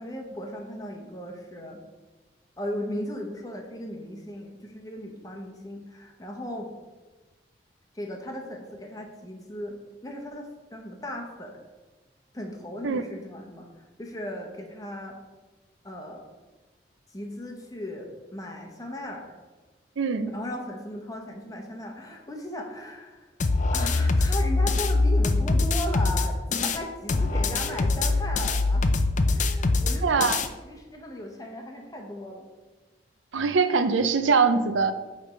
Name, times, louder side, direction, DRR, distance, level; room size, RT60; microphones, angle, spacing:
voice 1, 0.0-1.8 2.6-6.7 7.9-9.8 10.0-11.6 12.3-15.2 15.8-16.3 17.1-19.3 20.3-23.3 23.7-28.9 29.3-30.3 30.6-32.5, left 1 dB, 20° left, 2 dB, 0.9 m, -37 dB
voice 2, 20.0-20.3 30.0-30.4 33.3-34.9, right 5 dB, 85° right, 10 dB, 0.5 m, -23 dB
sound 1, 23.4-26.8 27.1-30.5, left 3 dB, 40° left, 0.4 m, -23 dB
8.6 x 3.4 x 5.1 m, 1.2 s
head